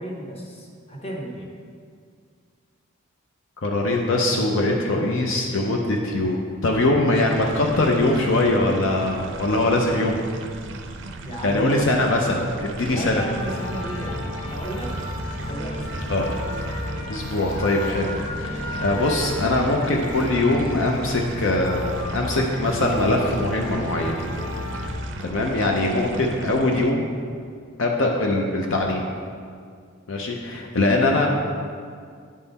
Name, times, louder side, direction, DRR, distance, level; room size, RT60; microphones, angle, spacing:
voice 1, 0.0-1.5 11.2-11.9 12.8-14.9 15.4-16.1 17.3-17.4, right 1 dB, 30° left, -1 dB, 0.9 m, -34 dB
voice 2, 3.6-10.2 11.4-13.2 16.1-16.3 17.1-24.2 24.7-24.8 25.2-27.1 27.8-29.1 30.1-31.3, left 2 dB, 65° left, 0 dB, 0.6 m, -22 dB
sound 1, 7.1-26.9, right 3 dB, 60° right, 0.5 m, -38 dB
sound 2, 13.4-24.9, left 1 dB, 90° left, 1.6 m, -32 dB
9.7 x 3.8 x 4.0 m, 2.1 s
head